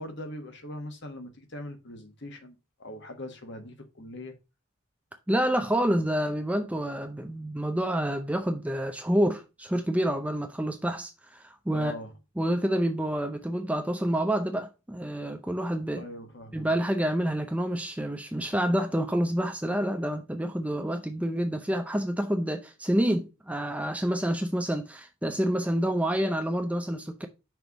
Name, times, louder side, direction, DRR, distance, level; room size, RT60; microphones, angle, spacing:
voice 1, 0.0-4.3 11.7-12.1 15.9-16.7, left 1 dB, 50° left, 1.4 m, -41 dB
voice 2, 5.3-11.9 12.4-16.0 16.5-27.3, right 1 dB, 5° right, 0.5 m, -28 dB
6.0 x 3.4 x 5.9 m
head